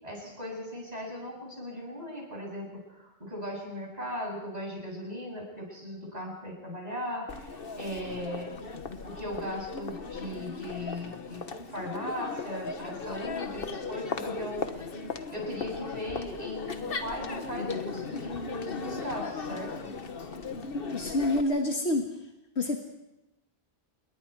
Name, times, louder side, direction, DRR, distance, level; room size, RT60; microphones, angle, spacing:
voice 1, 0.0-8.6 9.0-14.8 15.3-19.9, left 1 dB, 35° right, -1 dB, 8.0 m, -38 dB
Crowd, 7.3-21.4, left 4 dB, 55° left, 1.4 m, -37 dB
voice 2, 20.7-22.1 22.6-22.8, left 1 dB, 80° left, 2 dB, 1.9 m, -27 dB
28.0 x 22.0 x 4.7 m, 0.95 s
omnidirectional pair, 1.1 m